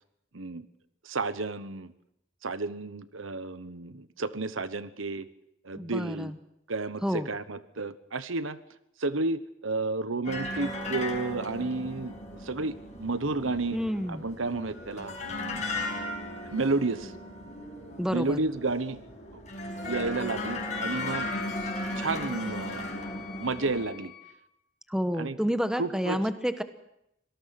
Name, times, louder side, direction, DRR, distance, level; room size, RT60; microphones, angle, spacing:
voice 1, 0.3-0.7 1.0-1.9 2.4-5.3 5.6-6.3 6.7-8.6 9.0-13.8 14.1-15.6 16.4-17.1 18.1-19.0 19.3-19.4 19.8-21.3 22.0-22.9 23.4-24.1 25.2-25.4 25.7-26.3, right 3 dB, 85° right, 13 dB, 1.1 m, -31 dB
voice 2, 5.7-6.3 7.0-7.3 13.7-14.2 18.0-18.4 24.9-26.6, equal, 5° right, 9 dB, 1.1 m, -29 dB
sound 1, 10.2-23.8, left 1 dB, 35° left, 5.9 m, -36 dB
Wind instrument woodwind instrument, 20.7-24.4, left 9 dB, 65° left, 4.1 m, -45 dB
25.5 x 18.5 x 6.0 m, 0.81 s
head